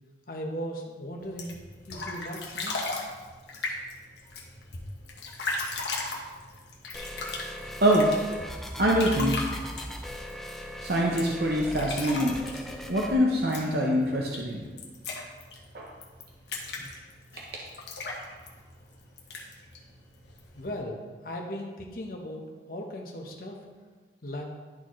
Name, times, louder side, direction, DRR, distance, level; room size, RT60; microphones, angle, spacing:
voice 1, 0.3-1.6 1.9-2.9 20.5-23.6 24.2-24.4, equal, 50° left, 1 dB, 1.0 m, -37 dB
sound 1, 1.2-20.8, left 3 dB, 75° left, 1.1 m, -38 dB
sound 2, 6.9-13.1, equal, ahead, 0.4 m, -39 dB
voice 2, 7.8-8.1 8.8-9.4 10.8-12.4 12.9-14.7 15.7-15.9 17.4-17.6, equal, 60° right, -2 dB, 0.7 m, -24 dB
11.5 x 4.2 x 3.1 m, 1.4 s
head